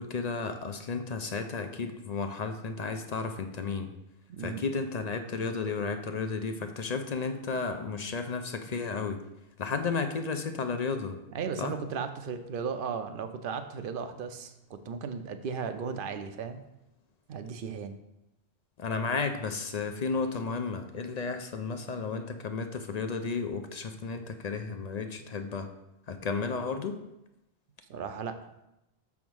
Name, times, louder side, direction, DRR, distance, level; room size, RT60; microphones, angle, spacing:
voice 1, 0.0-3.9 4.4-9.2 9.6-11.2 11.6-11.7 18.8-25.7 26.1-27.0, left 4 dB, 50° left, 7 dB, 0.5 m, -33 dB
voice 2, 4.3-4.6 11.3-16.6 17.3-18.0 27.9-28.4, right 6 dB, 60° right, 8 dB, 0.7 m, -36 dB
6.2 x 3.6 x 6.1 m, 0.88 s
omnidirectional pair, 1.1 m